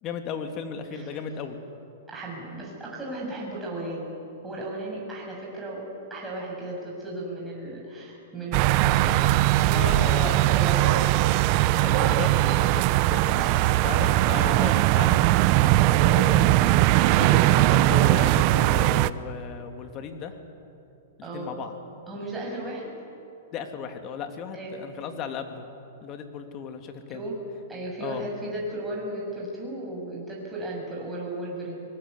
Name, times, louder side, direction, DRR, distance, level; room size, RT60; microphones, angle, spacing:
voice 1, 0.0-1.6 9.7-10.4 11.6-15.8 16.2-16.3 16.7-20.4 21.3-21.7 23.5-25.7 26.0-27.3 28.0-28.3, left 6 dB, 35° left, 6 dB, 2.7 m, -35 dB
voice 2, 2.1-4.1 4.4-5.8 6.1-11.0 13.3-13.7 15.6-16.2 21.2-21.6 22.1-22.9 24.5-24.9 27.1-27.4 27.7-31.8, right 1 dB, 10° right, -4 dB, 7.5 m, -35 dB
sound 1, 8.5-19.1, right 17 dB, 45° right, 0.7 m, -20 dB
25.0 x 20.5 x 8.4 m, 2.7 s
hypercardioid pair, 120°, 0 cm